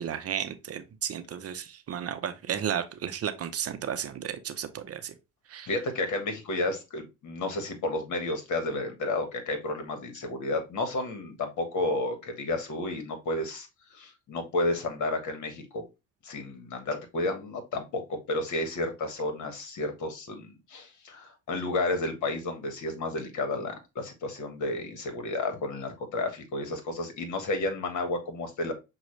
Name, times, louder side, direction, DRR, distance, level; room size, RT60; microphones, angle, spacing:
voice 1, 0.0-5.1 5.5-5.7, right 9 dB, 45° right, 0.7 m, -33 dB
voice 2, 5.7-15.8 16.2-28.7, left 2 dB, 55° left, 1.4 m, -32 dB
6.0 x 2.4 x 3.1 m
hypercardioid pair, 65°, 35 cm